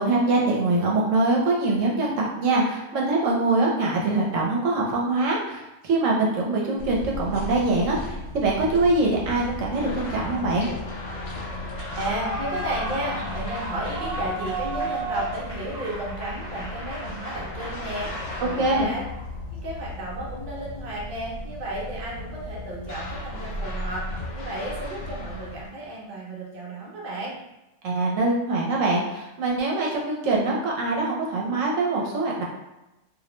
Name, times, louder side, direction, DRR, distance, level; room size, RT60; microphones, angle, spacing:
voice 1, 0.0-10.7 18.6-18.9 27.8-32.4, right 2 dB, 75° right, -2 dB, 0.9 m, -23 dB
sound 1, 6.8-25.7, left 1 dB, 70° left, 1.0 m, -36 dB
sound 2, 9.7-12.7 16.4-19.3 22.8-25.9, left 2 dB, 85° left, 0.4 m, -40 dB
Clapping / Cheering / Applause, 11.7-19.1, right 2 dB, 50° left, 1.2 m, -34 dB
voice 2, 12.0-19.0 19.5-24.1 24.3-27.4, right 1 dB, 50° right, -4 dB, 0.7 m, -33 dB
2.5 x 2.1 x 2.9 m, 0.98 s
omnidirectional pair, 1.3 m